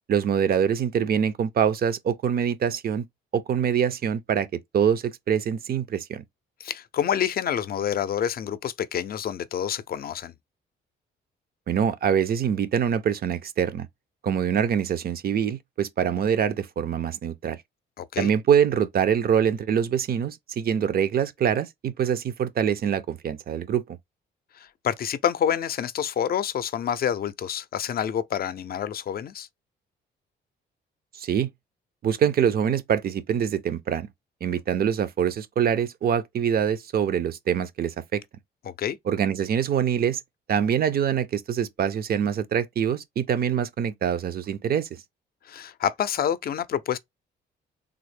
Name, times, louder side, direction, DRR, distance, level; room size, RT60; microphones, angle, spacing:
voice 1, 0.1-3.1 3.3-6.2 11.7-13.9 14.2-17.6 18.2-24.0 31.2-31.5 32.0-34.1 34.4-38.2 39.1-40.2 40.5-44.9, right 8 dB, 50° right, 0.5 m, -24 dB
voice 2, 6.6-10.3 18.0-18.3 24.5-29.5 38.6-39.0 45.4-47.0, left 9 dB, 50° left, 0.5 m, -28 dB
3.5 x 2.0 x 3.2 m
cardioid pair, 90°, 20 cm